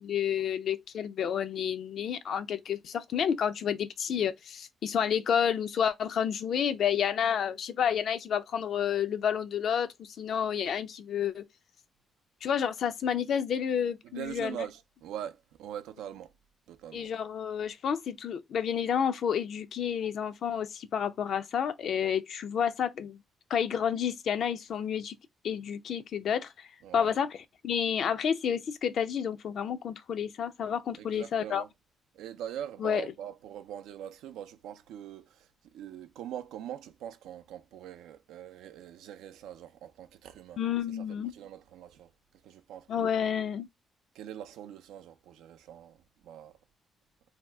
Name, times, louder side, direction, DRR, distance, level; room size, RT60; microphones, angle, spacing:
voice 1, 0.0-11.4 12.4-14.6 16.9-23.2 23.5-25.2 25.4-26.7 26.9-27.4 27.6-31.6 32.8-33.1 40.6-41.3 42.9-43.7, left 8 dB, 65° left, 0.4 m, -30 dB
voice 2, 14.0-16.3 16.7-17.1 26.8-27.2 31.0-31.7 32.1-40.6 40.9-41.0 41.3-42.1 42.4-43.1 44.1-46.5, right 10 dB, 90° right, 0.4 m, -43 dB
2.8 x 2.3 x 3.3 m
cardioid pair, 90°, 0 cm